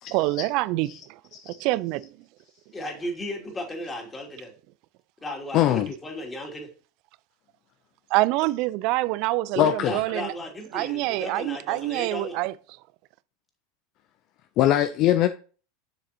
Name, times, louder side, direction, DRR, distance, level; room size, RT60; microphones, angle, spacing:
voice 1, 0.1-1.2 1.5-2.2 8.1-10.3 10.7-12.5, right 18 dB, 55° right, 0.4 m, -26 dB
voice 2, 2.7-4.5 5.2-6.7 9.6-12.4, left 1 dB, 20° left, 2.8 m, -35 dB
voice 3, 5.5-5.9 9.6-10.0 14.6-15.3, left 13 dB, 50° left, 0.5 m, -21 dB
7.7 x 6.5 x 2.9 m
hypercardioid pair, 90°, 0 cm